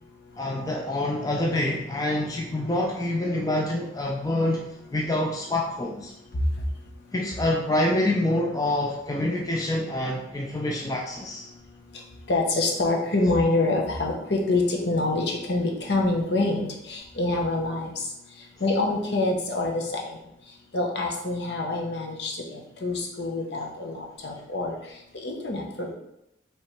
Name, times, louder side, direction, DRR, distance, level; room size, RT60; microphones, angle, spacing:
voice 1, 0.4-6.1 7.1-11.5, left 1 dB, 20° left, -1 dB, 0.4 m, -26 dB
voice 2, 12.3-18.1 18.6-20.2 20.7-24.8 25.2-25.9, left 2 dB, 60° left, 1 dB, 0.8 m, -26 dB
5.2 x 3.1 x 3.1 m, 0.82 s
head